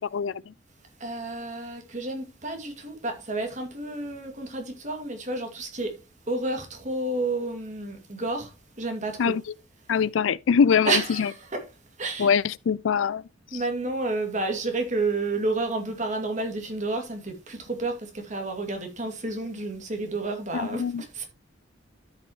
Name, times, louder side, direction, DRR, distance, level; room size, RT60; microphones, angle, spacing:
voice 1, 0.1-0.4 9.2-9.4 9.9-11.3 12.2-13.2 20.5-21.0, left 6 dB, 85° left, 0.4 m, -23 dB
voice 2, 1.0-6.0 6.3-9.4 10.8-11.7 12.0-12.3 13.5-21.2, right 2 dB, 40° right, 2.4 m, -30 dB
13.0 x 5.7 x 3.1 m
head